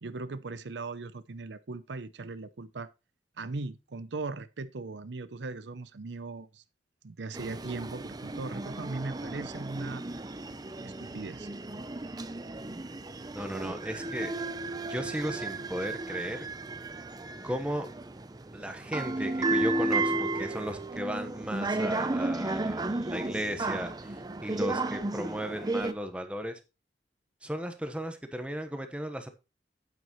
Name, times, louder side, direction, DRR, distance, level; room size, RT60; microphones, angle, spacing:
voice 1, 0.0-2.9 3.4-6.6 7.0-10.0 10.8-11.5, right 3 dB, 80° right, 0.7 m, -39 dB
sound 1, 7.3-25.9, right 2 dB, 20° right, 0.6 m, -33 dB
voice 2, 13.3-14.3 14.9-16.5 17.4-17.9 18.5-26.6 27.4-29.3, equal, 5° right, 1.2 m, -35 dB
9.1 x 9.0 x 3.1 m
head